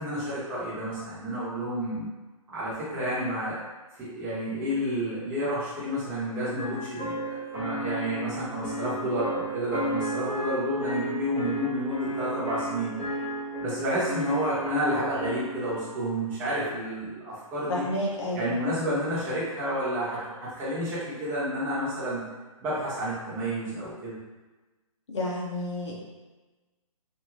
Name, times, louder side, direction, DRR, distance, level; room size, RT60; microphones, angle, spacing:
voice 1, 0.0-2.1 2.5-3.6 4.0-12.9 13.6-17.8 18.3-22.2 22.6-24.2, equal, 15° right, -10 dB, 1.0 m, -30 dB
sound 1, 6.6-16.0, right 1 dB, 15° left, 0.8 m, -33 dB
voice 2, 17.7-18.5 25.1-26.0, left 1 dB, 55° left, -4 dB, 0.7 m, -30 dB
2.6 x 2.5 x 3.1 m, 1.2 s
figure-of-eight pair, 130°, 18 cm